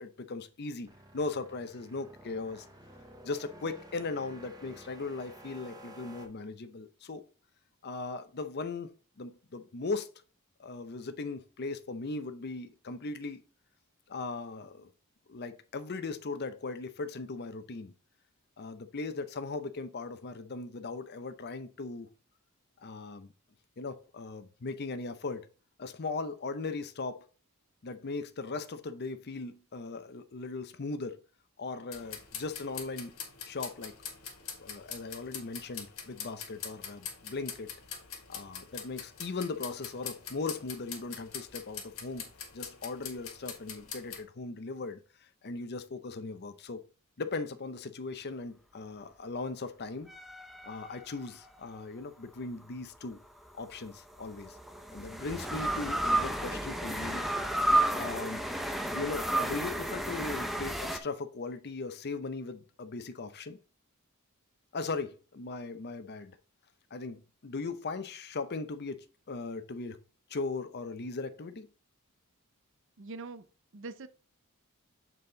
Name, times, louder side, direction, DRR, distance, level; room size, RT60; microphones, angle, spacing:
voice 1, 0.0-2.7 3.2-7.2 7.8-8.9 9.2-10.1 10.6-13.4 14.1-14.9 15.3-17.9 18.6-22.1 22.8-23.3 23.8-25.5 25.8-27.2 27.8-31.2 31.6-33.2 33.4-33.9 34.6-37.7 38.3-42.3 42.5-45.0 45.4-46.8 47.2-50.1 50.6-53.2 53.5-54.6 54.9-57.3 57.6-58.4 58.9-63.6 64.7-66.4 66.9-70.0 70.3-71.7, left 3 dB, 45° left, 0.6 m, -38 dB
sound 1, 0.9-6.3, right 1 dB, 15° right, 1.0 m, -52 dB
sound 2, 31.9-44.2, left 7 dB, 65° left, 1.7 m, -44 dB
sound 3, 50.1-51.6 53.5-61.0, right 1 dB, ahead, 0.6 m, -32 dB
voice 2, 73.0-73.5 73.7-74.1, right 3 dB, 60° right, 0.6 m, -42 dB
7.5 x 4.1 x 3.8 m
head